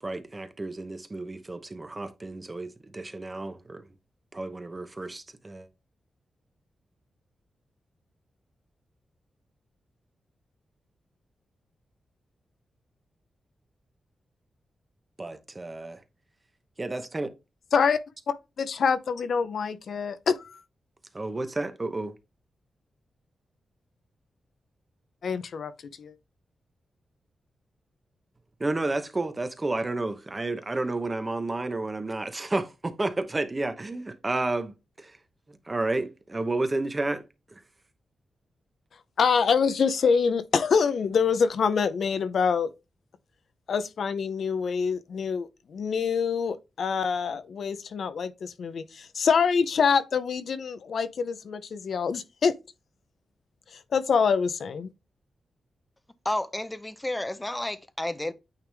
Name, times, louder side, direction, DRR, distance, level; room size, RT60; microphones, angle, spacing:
voice 1, 0.0-3.8 4.3-5.7 15.2-16.0 16.8-17.3 21.1-22.1 28.6-35.2 35.5-37.2 37.5-37.6, right 2 dB, 20° right, 0.8 m, -31 dB
voice 2, 18.3-20.6 25.2-25.7 26.0-26.1 39.2-42.7 43.7-52.5 53.7-54.9, left 6 dB, 60° left, 0.6 m, -25 dB
voice 3, 56.2-58.3, left 1 dB, 10° left, 0.6 m, -31 dB
9.0 x 3.5 x 3.4 m
wide cardioid pair, 155°, 0 cm